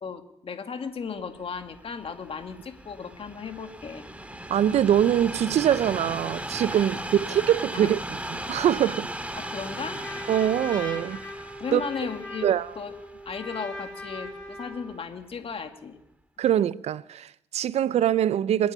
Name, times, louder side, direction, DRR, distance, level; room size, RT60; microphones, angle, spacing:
voice 1, 0.0-4.1 7.7-7.9 8.5-8.6 9.4-10.0 11.6-12.5 12.8-12.9 13.3-16.0, left 5 dB, 55° left, 2.2 m, -35 dB
Train, 1.4-14.6 15.3-15.4, right 1 dB, 10° right, 2.1 m, -37 dB
voice 2, 4.5-9.1 10.3-11.2 11.7-11.8 12.4-12.7 16.4-18.7, right 10 dB, 70° right, 0.6 m, -23 dB
Trumpet, 9.3-15.0, left 1 dB, 10° left, 7.5 m, -39 dB
28.0 x 9.4 x 5.5 m
hypercardioid pair, 40°, 11 cm